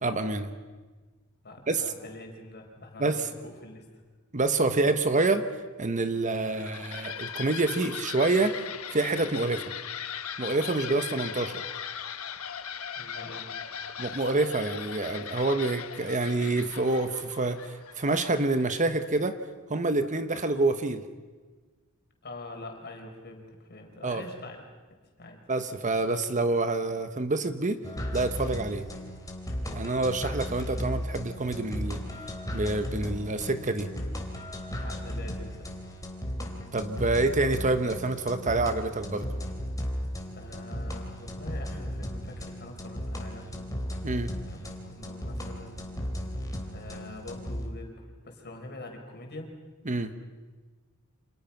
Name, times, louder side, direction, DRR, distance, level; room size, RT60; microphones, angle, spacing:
voice 1, 0.0-0.5 1.7-1.8 3.0-3.3 4.3-5.5 5.8-8.6 8.9-9.6 10.4-11.6 14.0-19.4 19.7-21.0 24.0-24.2 25.5-27.8 28.1-28.8 29.7-32.0 32.5-33.9 36.7-39.3 44.0-44.3 49.9-50.1, right 2 dB, 35° right, 9 dB, 1.2 m, -27 dB
voice 2, 1.4-3.9 12.9-13.6 22.2-24.6 25.2-25.4 34.8-35.7 40.3-43.7 44.5-45.9 46.7-49.5, left 2 dB, 50° left, 2 dB, 5.0 m, -44 dB
sound 1, 6.2-18.8, left 8 dB, 70° left, 1.4 m, -39 dB
sound 2, 27.8-47.7, equal, 15° left, 3.6 m, -36 dB
29.5 x 27.5 x 5.9 m, 1.3 s
head